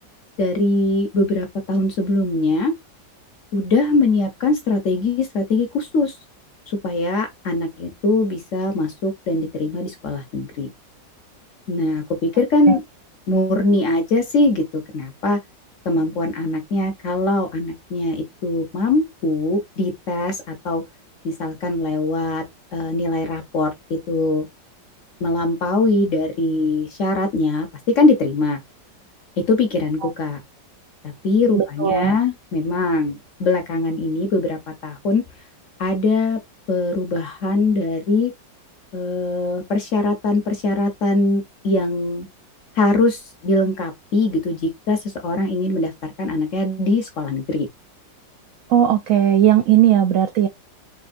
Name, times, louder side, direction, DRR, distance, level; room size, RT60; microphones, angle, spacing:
voice 1, 0.4-2.7 3.5-6.2 6.8-10.7 11.7-12.8 13.3-15.4 15.8-20.8 21.2-22.4 22.7-24.5 25.2-28.6 29.4-30.4 31.2-35.2 35.8-36.4 36.7-38.3 38.9-42.3 42.7-47.7, left 2 dB, 55° left, 1.0 m, -21 dB
voice 2, 31.6-32.2 48.7-50.5, right 10 dB, 80° right, 0.7 m, -17 dB
4.3 x 3.3 x 2.4 m
omnidirectional pair, 1.9 m